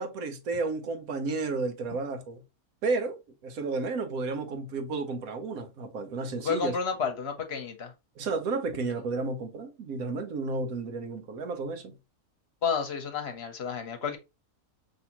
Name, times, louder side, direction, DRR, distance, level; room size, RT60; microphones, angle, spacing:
voice 1, 0.0-2.4 2.8-6.8 8.2-11.9, right 3 dB, 75° right, 1.3 m, -32 dB
voice 2, 6.4-7.9 12.6-14.2, left 6 dB, 50° left, 1.0 m, -31 dB
5.4 x 2.8 x 2.9 m
omnidirectional pair, 1.5 m